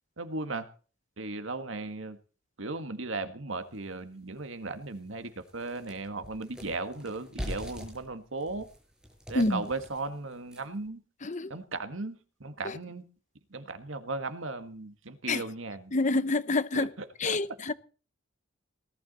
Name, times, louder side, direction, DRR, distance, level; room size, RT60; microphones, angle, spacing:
voice 1, 0.2-0.7 1.2-2.2 2.6-8.7 9.3-11.0 11.5-13.0 13.5-15.9 16.7-16.9 17.2-17.4, right 3 dB, 85° right, 1.8 m, -36 dB
sound 1, 3.7-3.8 4.3-4.4 4.8-10.9, equal, 5° right, 6.3 m, -43 dB
voice 2, 11.2-11.5 12.6-12.8 15.3-15.4 15.9-16.9 17.2-17.7, left 2 dB, 40° left, 0.8 m, -27 dB
19.0 x 12.5 x 4.2 m
head